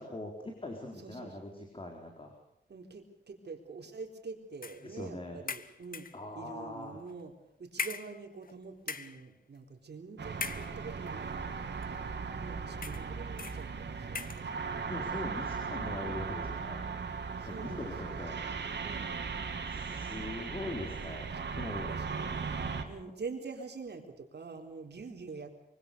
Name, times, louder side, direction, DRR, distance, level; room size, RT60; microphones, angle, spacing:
voice 1, 0.0-2.3 4.8-5.4 6.1-7.0 14.9-16.9 17.4-18.4 19.6-21.9 22.6-22.9, left 1 dB, 30° left, 2 dB, 4.2 m, -42 dB
voice 2, 1.0-1.4 2.7-6.1 6.3-7.3 7.6-12.0 12.4-14.7 17.4-18.2 18.8-19.1 21.4-22.3 22.8-25.5, right 4 dB, 70° right, 4 dB, 4.1 m, -46 dB
sound 1, 4.6-4.9 5.5-6.2 7.1-7.2 7.8-8.5 8.8-9.2 10.3-11.1 11.8-11.9 12.8-13.1 13.4-13.6 14.1-14.5, left 5 dB, 50° left, 1.2 m, -40 dB
sound 2, 10.2-22.8, right 5 dB, 90° right, 3.0 m, -38 dB
24.5 x 24.5 x 7.0 m, 0.78 s
wide cardioid pair, 145°, 18 cm